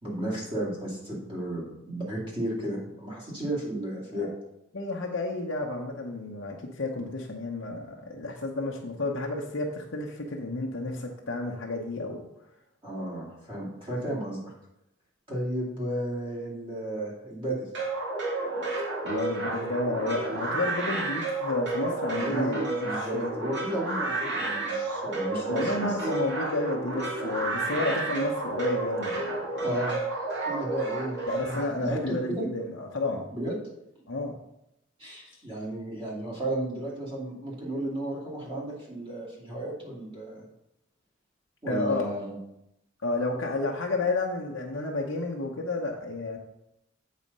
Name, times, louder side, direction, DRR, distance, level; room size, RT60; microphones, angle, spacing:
voice 1, 0.0-4.3 12.8-14.5 15.3-17.7 22.1-22.5 22.8-26.1 29.6-30.0 30.4-32.5 33.3-33.6 35.0-40.4 41.6-42.4, right 1 dB, 25° right, -5 dB, 2.6 m, -33 dB
voice 2, 4.7-12.2 18.8-23.3 25.5-29.3 31.3-33.3 34.1-34.3 41.7-42.1 43.0-46.4, left 2 dB, 75° left, -1 dB, 0.9 m, -31 dB
sound 1, 17.7-31.6, right 2 dB, 60° right, 2.5 m, -31 dB
8.4 x 4.1 x 5.4 m, 0.83 s
head